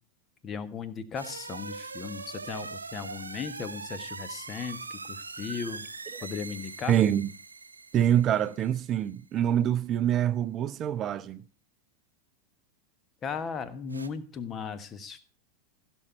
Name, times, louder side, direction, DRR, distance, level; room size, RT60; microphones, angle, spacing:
voice 1, 0.4-5.9 6.2-7.0 13.2-15.2, left 6 dB, 30° left, 1.3 m, -37 dB
sound 1, 1.1-9.0 13.9-14.1, right 4 dB, 80° right, 0.8 m, -41 dB
voice 2, 6.9-7.3 7.9-11.4, right 10 dB, 35° right, 0.6 m, -25 dB
16.0 x 6.4 x 5.7 m
figure-of-eight pair, 85°, 0 cm